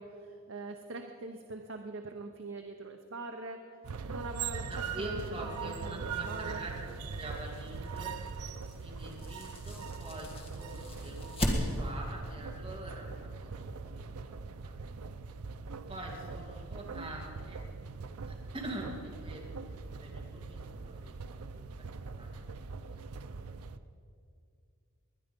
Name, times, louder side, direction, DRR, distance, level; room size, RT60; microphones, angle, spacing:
voice 1, 0.0-3.6 4.1-4.7 5.0-5.2 5.6-6.6, right 2 dB, 55° right, 4 dB, 0.8 m, -43 dB
sound 1, 3.8-23.8, right 5 dB, 90° right, 0.6 m, -41 dB
voice 2, 4.7-6.7 7.0-8.2 8.8-14.3 14.6-14.9 15.9-17.6 18.3-19.6 19.9-22.5 22.8-23.0 23.3-23.4, right 1 dB, 25° right, -3 dB, 2.4 m, -45 dB
sound 2, 6.5-12.1, equal, 25° left, 1.7 m, -38 dB
20.0 x 11.0 x 5.3 m, 2.4 s
head